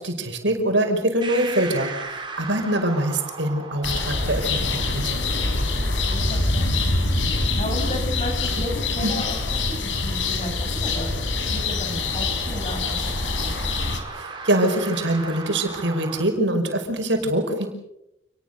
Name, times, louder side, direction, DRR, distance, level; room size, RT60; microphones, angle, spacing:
voice 1, 0.0-5.1 8.5-8.6 9.0-9.1 14.1-17.7, right 1 dB, 75° right, 4 dB, 5.5 m, -24 dB
sound 1, 1.2-16.2, right 3 dB, 25° right, 5.0 m, -39 dB
sound 2, 3.8-14.0, left 3 dB, 85° left, 4.6 m, -25 dB
voice 2, 5.6-6.9 7.3-13.4, left 1 dB, 35° left, 3 dB, 6.8 m, -34 dB
29.0 x 20.5 x 6.8 m, 0.86 s
head